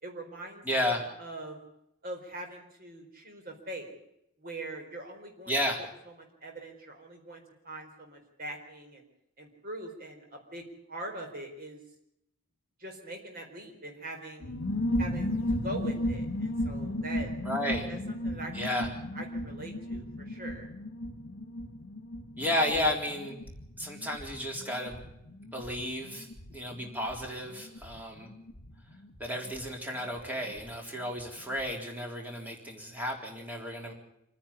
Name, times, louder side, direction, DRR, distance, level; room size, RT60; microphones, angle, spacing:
voice 1, 0.0-1.6 2.0-3.9 4.4-5.6 6.4-9.1 9.4-11.8 12.8-14.5 15.0-17.3 17.9-18.9 19.1-20.7 22.7-22.9, right 1 dB, 45° right, 3 dB, 4.4 m, -42 dB
voice 2, 0.7-1.1 5.5-5.8 17.4-17.9 18.5-18.9 22.4-23.4 23.8-25.0 25.5-28.3 29.2-33.9, left 1 dB, 10° right, 1 dB, 3.8 m, -32 dB
sound 1, 14.4-30.7 31.0-31.1 31.3-31.7, left 1 dB, 65° left, 1.5 m, -36 dB
26.5 x 10.5 x 9.9 m, 0.80 s
head